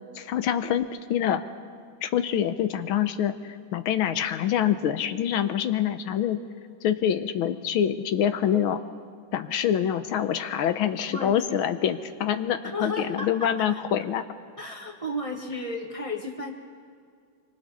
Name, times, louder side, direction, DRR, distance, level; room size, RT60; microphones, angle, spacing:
voice 1, 0.1-1.4 2.0-3.3 3.7-6.4 6.8-8.8 9.3-14.2, left 9 dB, 80° left, 10 dB, 1.6 m, -25 dB
voice 2, 11.1-11.4 12.6-13.8 14.6-16.5, left 1 dB, 20° right, 2 dB, 1.0 m, -33 dB
25.5 x 24.5 x 4.2 m, 2.3 s
omnidirectional pair, 2.3 m